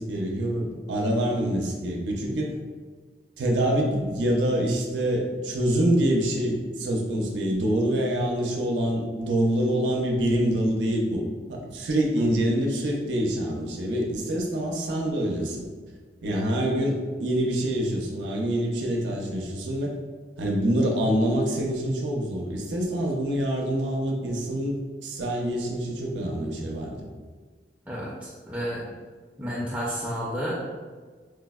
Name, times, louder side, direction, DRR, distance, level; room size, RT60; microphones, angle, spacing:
voice 1, 0.0-2.5 3.4-11.2 11.5-15.7 16.2-19.9 20.4-24.8 25.0-27.0, right 1 dB, 90° right, 0 dB, 0.5 m, -26 dB
voice 2, 27.9-28.9 29.4-30.5, equal, 10° right, -8 dB, 0.4 m, -31 dB
4.5 x 2.0 x 2.2 m, 1.5 s
head